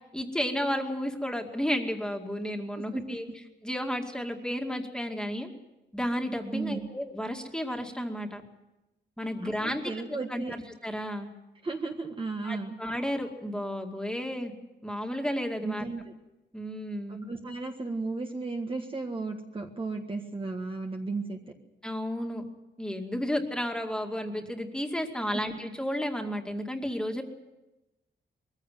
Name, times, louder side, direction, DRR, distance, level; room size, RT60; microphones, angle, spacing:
voice 1, 0.1-3.3 3.6-5.5 5.9-8.4 9.2-9.8 10.3-10.5 10.8-11.3 12.4-14.5 14.8-15.8 16.5-17.3 21.8-22.4 22.8-27.2, equal, 5° left, 3 dB, 2.3 m, -32 dB
voice 2, 2.8-3.2 6.5-6.9 9.4-10.5 11.6-12.8 15.6-16.1 17.1-21.4 25.2-25.4, right 3 dB, 25° right, 2 dB, 1.6 m, -35 dB
22.0 x 15.5 x 9.3 m, 1.0 s
wide cardioid pair, 140°, 19 cm